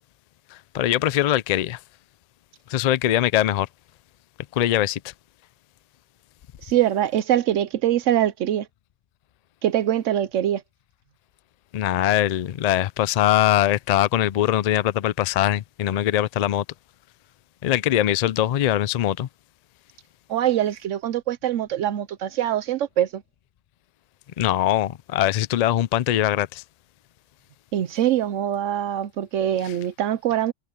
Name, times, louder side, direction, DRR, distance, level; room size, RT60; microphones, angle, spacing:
voice 1, 0.5-1.8 2.7-3.7 4.5-5.1 11.7-16.6 17.6-19.3 24.4-26.6 29.6-29.8, left 12 dB, 80° left, 0.3 m, -22 dB
voice 2, 6.6-8.7 9.6-10.6 20.3-23.2 27.7-30.5, right 11 dB, 80° right, 1.0 m, -23 dB
omnidirectional pair, 1.3 m